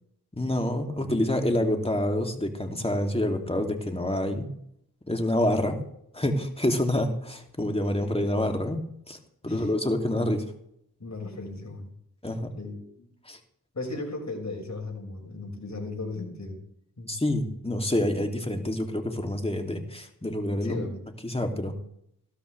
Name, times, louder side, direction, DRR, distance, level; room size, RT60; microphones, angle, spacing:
voice 1, 0.3-4.5 5.1-5.8 6.1-8.8 9.1-9.2 9.4-10.5 12.2-12.6 13.3-13.4 17.1-20.8 21.2-21.7, left 1 dB, 15° left, 3 dB, 2.9 m, -27 dB
voice 2, 1.0-1.9 9.4-9.7 11.0-11.9 12.6-13.1 13.7-16.6 17.0-17.2 20.4-21.0, left 2 dB, 45° left, 1 dB, 6.0 m, -37 dB
16.0 x 13.0 x 3.5 m, 0.71 s
cardioid pair, 45°, 40 cm